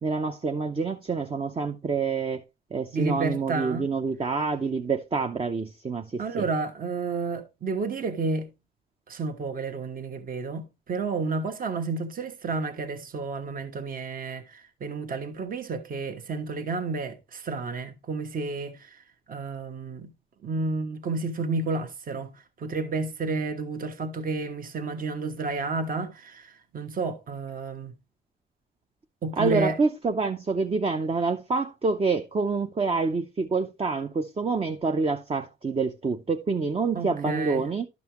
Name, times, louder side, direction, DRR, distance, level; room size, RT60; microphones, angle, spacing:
voice 1, 0.0-2.4 2.7-6.5 29.4-37.9, right 4 dB, 30° right, 0.7 m, -27 dB
voice 2, 2.9-3.9 6.2-8.5 9.1-19.0 19.3-20.1 20.4-22.3 22.6-27.9 29.2-29.8 36.9-37.6, right 3 dB, 45° right, 1.2 m, -31 dB
11.5 x 5.4 x 3.0 m
cardioid pair, 90°, 20 cm